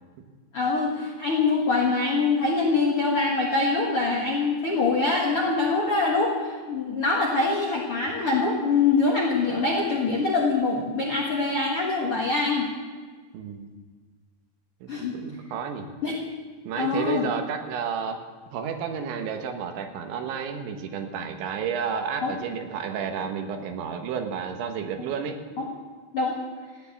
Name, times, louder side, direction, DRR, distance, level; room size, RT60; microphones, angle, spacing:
voice 1, 0.5-12.7 14.9-15.2 16.0-16.2 16.8-17.2 22.2-22.3 25.6-25.7 26.1-26.3, left 3 dB, 65° left, -2 dB, 1.4 m, -24 dB
voice 2, 13.3-13.7 14.8-15.9 16.7-18.2 18.5-25.4, right 7 dB, 85° right, 5 dB, 3.6 m, -31 dB
14.5 x 9.5 x 8.4 m, 1.5 s
omnidirectional pair, 5.2 m